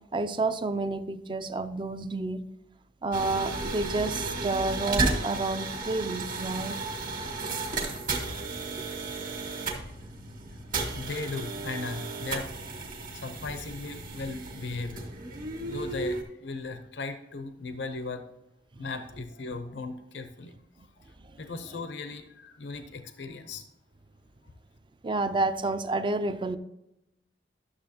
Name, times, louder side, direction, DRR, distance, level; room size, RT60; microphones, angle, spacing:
voice 1, 0.1-2.4 3.0-6.8 21.3-21.4 25.0-26.6, right 2 dB, 25° right, 11 dB, 0.4 m, -29 dB
sound 1, 3.1-16.2, right 3 dB, 50° right, 1.6 m, -33 dB
voice 2, 10.9-12.5 12.8-15.1 15.6-18.2 18.8-20.5 21.4-23.6, left 3 dB, 80° left, 8 dB, 0.7 m, -37 dB
11.5 x 6.8 x 2.8 m, 0.86 s
head